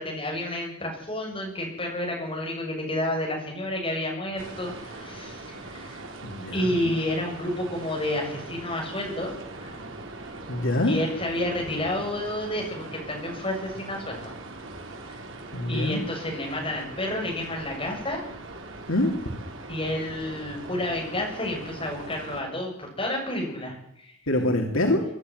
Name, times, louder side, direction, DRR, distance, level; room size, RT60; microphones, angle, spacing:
voice 1, 0.0-6.0 6.5-9.9 10.9-14.3 15.7-18.2 19.7-23.8 24.0-24.1, left 1 dB, 25° left, 0 dB, 7.3 m, -30 dB
sound 1, 4.4-22.4, right 2 dB, 75° right, 3.9 m, -41 dB
voice 2, 6.2-6.9 10.5-11.0 15.5-16.0 18.9-19.1 24.3-25.0, left 1 dB, 85° left, 2 dB, 3.1 m, -25 dB
24.0 x 12.0 x 9.5 m, 0.74 s
head